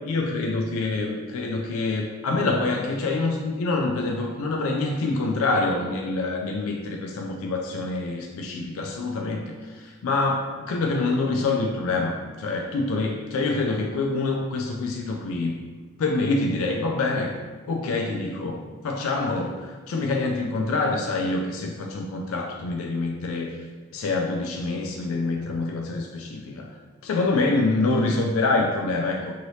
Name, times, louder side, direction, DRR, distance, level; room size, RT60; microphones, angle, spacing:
voice 1, 0.0-15.6 16.0-17.4 17.7-23.6 23.9-26.7 27.0-29.3, left 3 dB, 75° left, 1 dB, 0.3 m, -26 dB
2.8 x 2.7 x 3.1 m, 1.4 s
head